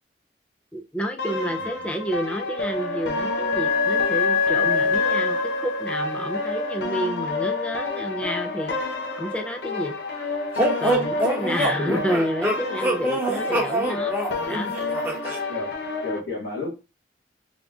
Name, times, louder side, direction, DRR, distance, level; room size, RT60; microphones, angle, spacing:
voice 1, 0.7-8.7 9.2-9.9 10.8-14.8 15.3-15.5, equal, 5° left, 0.5 m, -30 dB
sound 1, 1.2-16.2, left 3 dB, 70° left, 0.8 m, -30 dB
Wind instrument woodwind instrument, 2.4-7.1, left 4 dB, 50° left, 1.1 m, -25 dB
sound 2, 10.6-15.4, right 1 dB, 10° right, 0.9 m, -25 dB
voice 2, 11.4-12.1 13.0-13.6 15.3-16.7, left 2 dB, 85° left, 1.7 m, -33 dB
3.7 x 3.5 x 2.4 m
head